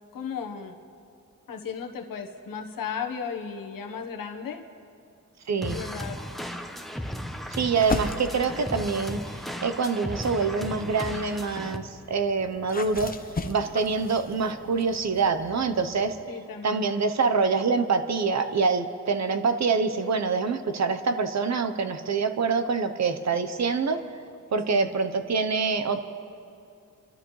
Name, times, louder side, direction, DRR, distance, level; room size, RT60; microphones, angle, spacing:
voice 1, 0.1-0.8 1.5-4.6 5.6-6.2 16.3-16.8 24.7-24.9, left 6 dB, 90° left, 3 dB, 1.2 m, -35 dB
voice 2, 5.5-5.8 7.5-13.1 13.5-16.2 16.6-24.0 24.5-26.0, right 4 dB, 55° right, 9 dB, 0.9 m, -25 dB
sound 1, 5.6-11.8, equal, ahead, 0.9 m, -35 dB
sound 2, 7.7-9.3 10.0-16.2, left 3 dB, 25° left, 0.9 m, -38 dB
29.0 x 12.5 x 3.2 m, 2.6 s
cardioid pair, 85°, 33 cm